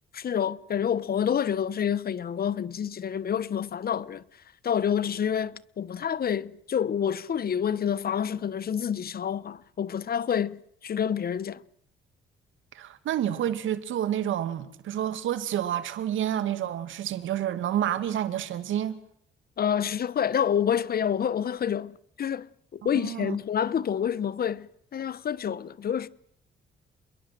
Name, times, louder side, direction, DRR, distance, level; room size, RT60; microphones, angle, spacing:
voice 1, 0.1-4.2 4.6-11.6 19.6-22.5 22.7-26.1, left 8 dB, 50° left, 1.2 m, -28 dB
voice 2, 12.7-19.0 22.9-23.4, right 11 dB, 80° right, 2.4 m, -29 dB
28.5 x 22.0 x 7.7 m
cardioid pair, 90°, 20 cm